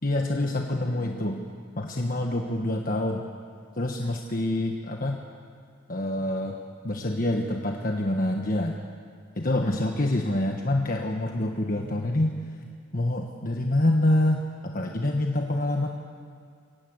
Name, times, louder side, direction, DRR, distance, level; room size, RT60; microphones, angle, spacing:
voice 1, 0.0-1.4 1.8-3.2 3.8-5.2 5.9-6.6 6.8-8.7 9.3-12.4 12.9-15.9, left 1 dB, 45° left, 2 dB, 1.4 m, -26 dB
25.0 x 19.0 x 8.0 m, 2.1 s
head